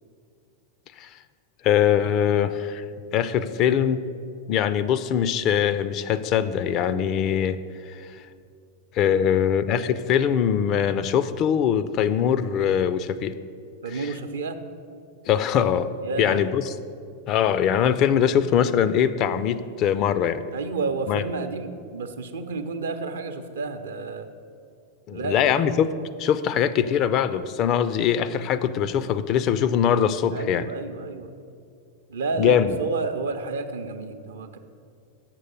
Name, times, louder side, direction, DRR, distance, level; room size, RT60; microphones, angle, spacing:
voice 1, 1.6-2.8 3.1-4.0 4.5-7.6 7.9-8.2 8.9-13.4 13.9-14.1 15.3-15.9 16.2-16.6 17.3-20.4 21.1-21.2 25.1-25.9 26.2-30.6 32.4-32.8, left 9 dB, 35° left, 13 dB, 0.4 m, -22 dB
voice 2, 9.1-9.4 13.8-14.6 16.0-16.4 20.5-24.3 25.1-25.8 30.3-31.3 32.1-34.6, right 4 dB, 65° right, 8 dB, 0.6 m, -31 dB
7.5 x 6.4 x 6.8 m, 2.3 s
figure-of-eight pair, 90°, 0 cm